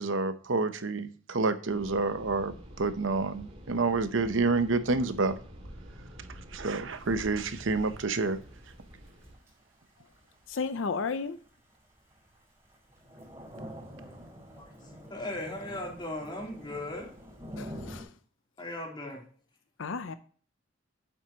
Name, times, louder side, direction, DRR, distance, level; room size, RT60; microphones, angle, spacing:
voice 1, 0.0-5.4 6.5-8.4, right 3 dB, 70° right, 0.8 m, -28 dB
sound 1, 1.7-9.4, equal, 35° right, 2.2 m, -48 dB
Thunder / Rain, 6.9-18.0, equal, 15° right, 4.8 m, -47 dB
voice 2, 10.5-11.4 17.6-18.1 19.8-20.1, left 4 dB, 70° left, 0.6 m, -33 dB
voice 3, 15.1-17.1 18.6-19.2, left 1 dB, 25° left, 3.2 m, -37 dB
9.0 x 7.5 x 2.9 m
head